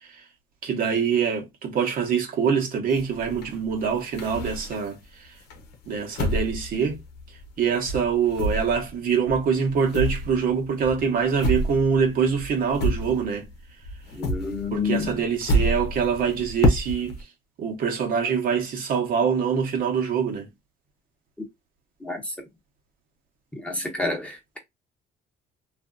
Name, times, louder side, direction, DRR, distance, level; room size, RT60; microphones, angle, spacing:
voice 1, 0.6-5.4 5.9-7.0 7.6-13.5 14.7-17.1 17.6-20.5, right 6 dB, 55° right, 1.0 m, -24 dB
sound 1, 2.9-5.0 5.5-7.6 7.9-13.6 13.8-17.2, equal, 80° left, 0.8 m, -28 dB
voice 2, 14.2-15.1 22.0-22.3 23.6-24.6, left 3 dB, 5° left, 0.9 m, -29 dB
2.7 x 2.5 x 2.4 m
cardioid pair, 110°, 17 cm